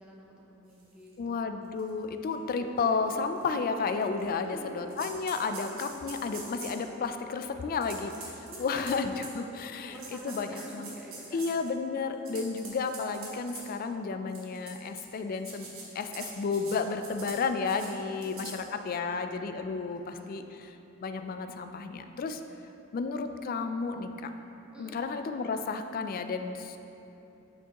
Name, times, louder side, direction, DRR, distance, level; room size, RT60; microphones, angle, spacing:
voice 1, 0.0-1.6 4.4-5.1 8.4-11.4 18.0-19.2 19.8-20.5 24.7-25.0, equal, 5° right, -4 dB, 0.8 m, -49 dB
sound 1, 1.1-1.2 1.8-1.9 2.3-2.4 3.4-3.5 4.0-4.5 4.9-6.9 7.8-9.4 9.9-11.7 12.1-13.6 14.3-15.0 15.3-16.8 17.0-17.4 17.6-17.9 18.2-18.5, right 4 dB, 75° right, 1.2 m, -44 dB
voice 2, 1.2-4.5 4.7-10.9 11.3-15.7 15.9-20.8 21.0-22.4 22.9-24.3 24.8-26.8, left 4 dB, 45° left, 8 dB, 0.3 m, -32 dB
sound 2, 2.3-9.6, equal, 50° right, 0.4 m, -48 dB
8.2 x 4.7 x 2.9 m, 2.9 s
head